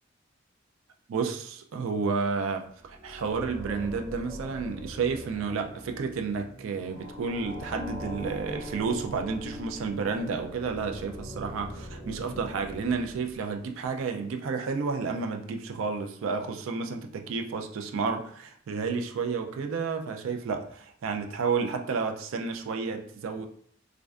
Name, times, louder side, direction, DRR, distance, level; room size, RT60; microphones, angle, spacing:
voice 1, 1.1-23.5, right 5 dB, 80° right, 0.3 m, -31 dB
sound 1, 2.7-13.9, equal, ahead, 0.4 m, -42 dB
2.5 x 2.1 x 2.3 m
head